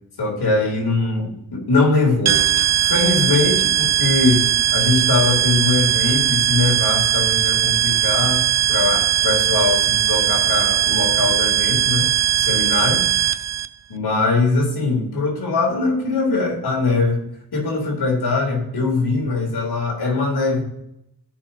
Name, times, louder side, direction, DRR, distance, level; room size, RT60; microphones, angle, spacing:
voice 1, 0.2-2.4 2.8-4.5 4.7-13.1 13.9-17.2 17.5-20.6, left 3 dB, 70° left, 0 dB, 3.2 m, -21 dB
sound 1, 2.3-13.7, right 11 dB, 40° right, 0.5 m, -19 dB
14.0 x 5.5 x 2.7 m, 0.81 s
cardioid pair, 50°, 40 cm